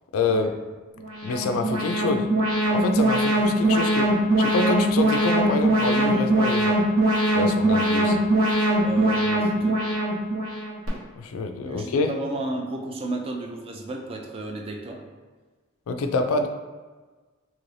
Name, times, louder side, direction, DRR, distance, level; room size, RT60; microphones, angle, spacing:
voice 1, 0.1-0.5 1.2-2.3 2.7-4.1 4.4-6.8 7.3-8.2 11.2-12.1 15.9-16.5, left 3 dB, 75° left, 6 dB, 0.3 m, -26 dB
Alarm, 1.0-10.9, right 1 dB, 80° right, 0.9 m, -22 dB
voice 2, 8.8-9.8 11.6-15.0, right 2 dB, 25° right, 2 dB, 0.4 m, -33 dB
2.9 x 2.6 x 3.1 m, 1.3 s
head